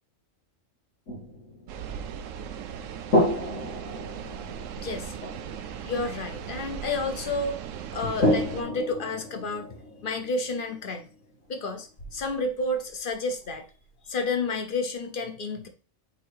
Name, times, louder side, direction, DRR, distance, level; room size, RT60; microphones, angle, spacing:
sound 1, 1.1-2.7 3.1-7.5 8.0-13.5, left 1 dB, 80° left, 2.8 m, -31 dB
sound 2, 1.7-8.6, right 8 dB, 85° right, 1.0 m, -38 dB
voice 1, 4.8-5.1 5.8-7.6 7.9-11.1 11.5-13.7 14.1-15.7, left 3 dB, 45° left, 7 dB, 0.9 m, -30 dB
7.0 x 2.8 x 4.7 m, 0.36 s
omnidirectional pair, 1.3 m